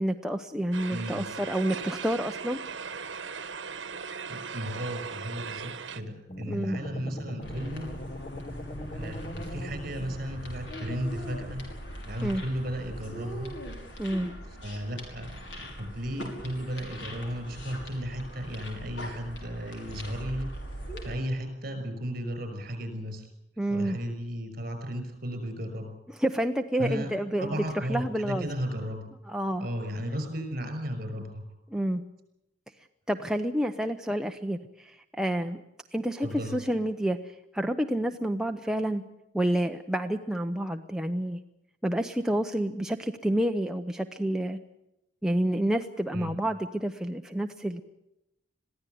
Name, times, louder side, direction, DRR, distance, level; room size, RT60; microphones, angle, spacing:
voice 1, 0.0-2.6 6.5-6.8 12.2-12.4 14.0-14.3 23.6-24.0 26.1-28.5 29.3-29.7 31.7-32.0 33.1-35.6 35.9-37.2 37.5-39.0 39.3-41.4 41.8-44.6 45.2-47.8, right 1 dB, 5° right, 4 dB, 0.7 m, -29 dB
sound 1, 0.7-6.0, right 6 dB, 75° right, 1.3 m, -38 dB
voice 2, 0.9-1.2 4.3-7.9 8.9-11.6 12.0-13.5 14.6-20.5 21.0-23.3 23.7-25.9 26.8-27.1 27.4-29.0 29.6-31.4 36.2-36.6 46.1-46.3, equal, 50° right, 7 dB, 6.0 m, -35 dB
sound 2, 6.3-10.6, left 1 dB, 35° left, 1.3 m, -40 dB
sound 3, 7.4-21.1, equal, 70° left, 5.7 m, -41 dB
22.0 x 15.5 x 9.3 m, 0.87 s
head